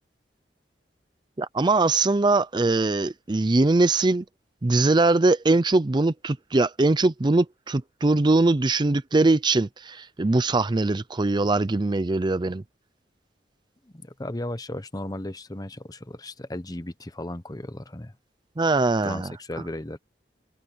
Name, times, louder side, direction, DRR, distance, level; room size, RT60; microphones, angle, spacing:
voice 1, 1.4-4.2 4.6-12.6 18.6-19.3, right 2 dB, 25° right, 0.5 m, -21 dB
voice 2, 13.8-18.1 19.0-20.0, left 1 dB, 20° left, 1.0 m, -35 dB
head